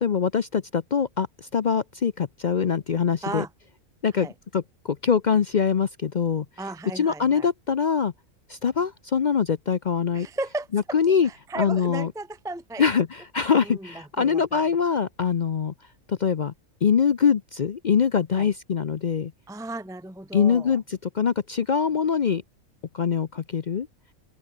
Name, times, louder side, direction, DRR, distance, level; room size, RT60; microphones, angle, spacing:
voice 1, 0.0-3.4 4.0-4.3 4.5-6.5 7.0-8.1 8.5-10.3 10.7-11.3 11.6-12.1 12.8-15.7 16.1-16.5 16.8-19.3 20.3-22.4 22.9-23.9, left 6 dB, 50° left, 0.5 m, -23 dB
voice 2, 6.6-7.5 10.1-11.0 11.2-12.8 13.6-14.6 18.3-18.5 19.5-20.8, right 2 dB, 5° right, 0.9 m, -35 dB
open air
omnidirectional pair, 1.4 m